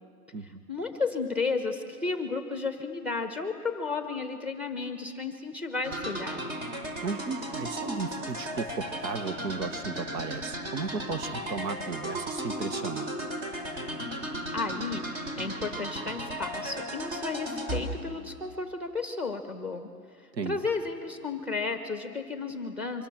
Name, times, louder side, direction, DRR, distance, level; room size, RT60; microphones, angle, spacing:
voice 1, 0.4-6.4 14.5-15.0 15.4-19.9 20.4-23.1, left 4 dB, 5° right, 6 dB, 1.2 m, -33 dB
sound 1, 5.8-17.8, right 1 dB, 35° right, 3.8 m, -35 dB
voice 2, 7.0-13.1 20.3-20.6, right 4 dB, 85° right, 11 dB, 1.5 m, -35 dB
24.5 x 24.5 x 7.5 m, 2.1 s
hypercardioid pair, 155°, 50 cm